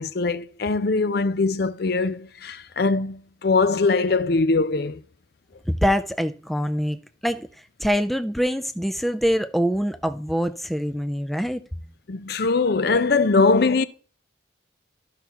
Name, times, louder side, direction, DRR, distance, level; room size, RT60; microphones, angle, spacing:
voice 1, 0.0-5.0 12.1-13.8, left 3 dB, 55° left, 0.5 m, -21 dB
voice 2, 5.7-7.5 7.8-11.6, equal, ahead, 0.4 m, -24 dB
13.5 x 5.7 x 2.9 m
head